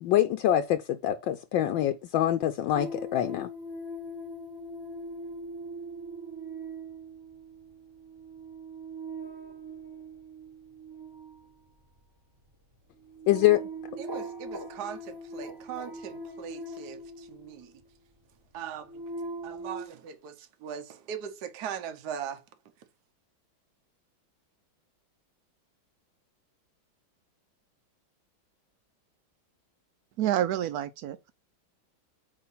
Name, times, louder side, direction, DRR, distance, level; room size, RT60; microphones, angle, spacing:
voice 1, 0.0-3.5 13.3-13.6, left 12 dB, 75° left, 1.3 m, -25 dB
sound 1, 2.7-17.9 18.5-19.8, right 1 dB, 15° right, 0.8 m, -41 dB
voice 2, 14.0-17.7 18.5-19.0 19.4-22.4, right 8 dB, 60° right, 1.4 m, -40 dB
voice 3, 30.2-31.3, right 11 dB, 85° right, 0.8 m, -28 dB
8.4 x 2.9 x 5.5 m
omnidirectional pair, 2.2 m